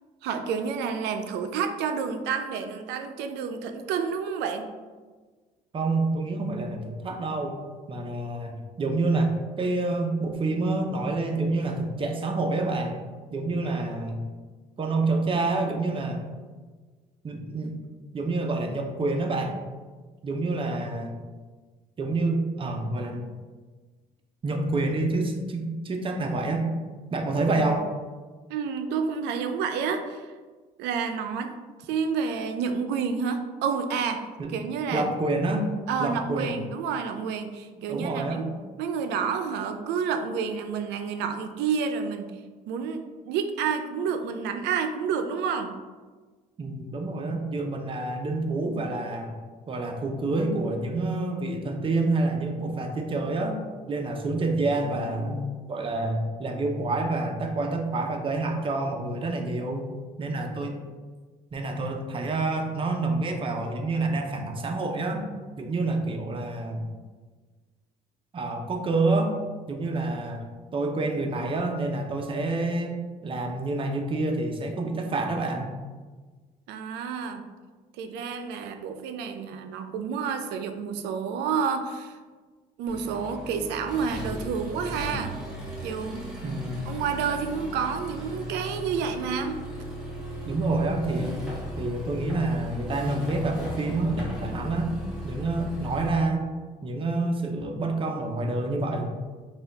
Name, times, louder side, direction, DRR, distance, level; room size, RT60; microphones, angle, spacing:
voice 1, 0.2-4.7 28.5-30.3 30.8-31.5 31.8-34.3 34.5-35.1 35.9-38.5 38.8-42.3 42.7-45.8 76.7-77.5 78.0-82.2 82.8-85.4 85.8-86.2 86.9-89.6, right 6 dB, 85° right, 7 dB, 0.4 m, -29 dB
voice 2, 5.7-7.6 7.9-12.9 13.3-14.2 14.8-16.2 17.2-17.7 18.1-19.6 20.2-21.2 22.0-23.3 24.4-26.7 27.1-27.9 34.4-34.5 34.9-35.7 36.0-36.5 37.9-38.5 46.6-49.3 49.7-53.6 53.9-59.9 60.2-60.8 61.5-65.3 65.6-66.9 68.3-69.3 69.7-70.4 70.7-73.0 73.2-75.7 86.4-86.9 90.4-91.4 91.8-94.9 95.2-96.5 96.8-99.1, right 2 dB, 30° right, 3 dB, 0.6 m, -28 dB
Accelerating revving vroom, 82.9-96.1, left 1 dB, 5° right, 1.1 m, -37 dB
4.0 x 2.3 x 3.9 m, 1.4 s
cardioid pair, 110°, 17 cm